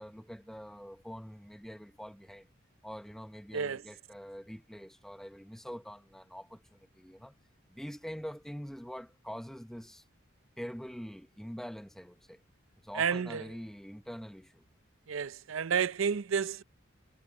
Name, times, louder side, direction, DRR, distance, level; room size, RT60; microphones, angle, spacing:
voice 1, 0.0-2.5 2.8-7.3 7.7-10.0 10.6-12.4 12.8-14.6, equal, ahead, 1.0 m, -44 dB
voice 2, 13.0-13.4 15.1-16.6, right 6 dB, 80° right, 0.6 m, -30 dB
head